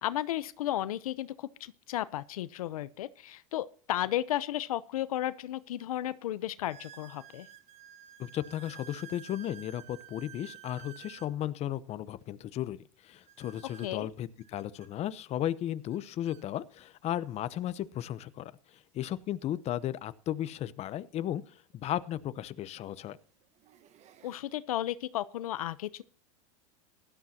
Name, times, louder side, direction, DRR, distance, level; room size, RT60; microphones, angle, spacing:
voice 1, 0.0-7.5 13.8-14.1 24.2-26.0, left 13 dB, 90° left, 0.8 m, -34 dB
sound 1, 5.0-5.1 5.7-5.8 6.7-11.3 13.3-14.9 15.9-16.0 16.3-16.4 17.2-17.3 19.5-19.6 21.7-21.8 22.6-22.9 23.4-24.4, right 9 dB, 40° right, 1.4 m, -52 dB
voice 2, 8.2-18.5 18.9-23.2, left 12 dB, 35° left, 0.8 m, -35 dB
17.0 x 12.5 x 2.9 m
supercardioid pair, 120°, 18 cm